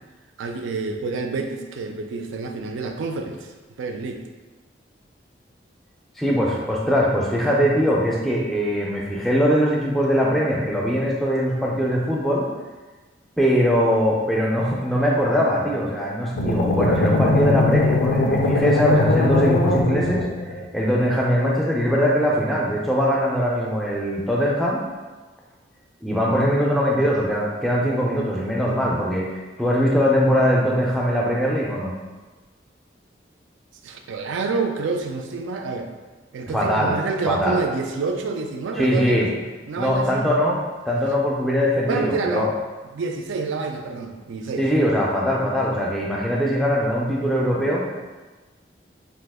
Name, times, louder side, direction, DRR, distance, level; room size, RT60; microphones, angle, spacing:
voice 1, 0.4-3.5 3.8-4.3 33.8-35.9 36.3-39.3 39.7-40.3 41.9-42.5 42.9-44.7, right 4 dB, 85° right, 4 dB, 0.3 m, -28 dB
voice 2, 6.2-12.5 13.4-20.2 20.7-24.8 26.0-31.9 36.5-37.0 37.3-37.6 38.8-39.3 39.7-42.5 44.6-47.9, equal, ahead, -3 dB, 0.4 m, -21 dB
sound 1, 16.4-20.6, left 2 dB, 90° left, 0.4 m, -20 dB
2.8 x 2.3 x 3.5 m, 1.3 s
head